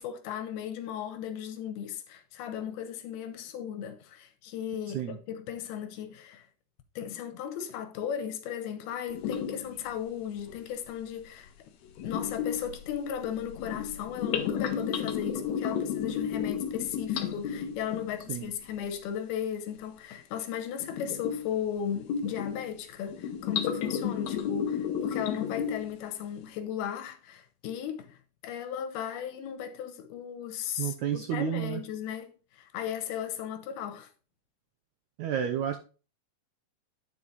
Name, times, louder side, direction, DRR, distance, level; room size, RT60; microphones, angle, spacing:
voice 1, 0.0-6.5 7.0-11.5 12.0-34.1, left 9 dB, 90° left, 3.0 m, -36 dB
sound 1, 9.1-9.8 10.4-10.5 12.0-18.3 20.8-21.5 21.9-22.7 23.1-26.0, left 8 dB, 75° left, 1.7 m, -32 dB
voice 2, 30.8-31.8 35.2-35.8, right 10 dB, 90° right, 1.6 m, -31 dB
10.5 x 4.9 x 4.1 m
omnidirectional pair, 4.3 m